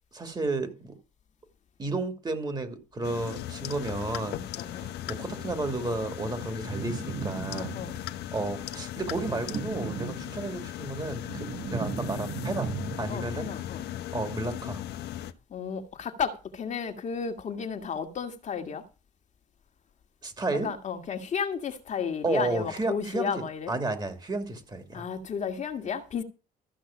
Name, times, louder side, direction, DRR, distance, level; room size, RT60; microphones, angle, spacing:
voice 1, 0.1-1.0 1.8-7.8 8.3-13.5 14.1-14.8 20.2-20.7 22.2-25.1, right 2 dB, 25° right, 2.6 m, -32 dB
sound 1, 3.0-15.3, left 13 dB, 75° left, 1.1 m, -38 dB
voice 2, 4.6-4.9 7.5-7.9 13.1-13.8 15.5-18.8 20.6-23.7 24.9-26.2, left 6 dB, 45° left, 1.9 m, -33 dB
sound 2, 6.6-8.2 9.1-10.6 11.0-13.4, right 7 dB, 50° right, 1.5 m, -36 dB
14.0 x 6.1 x 7.2 m
cardioid pair, 110°, 17 cm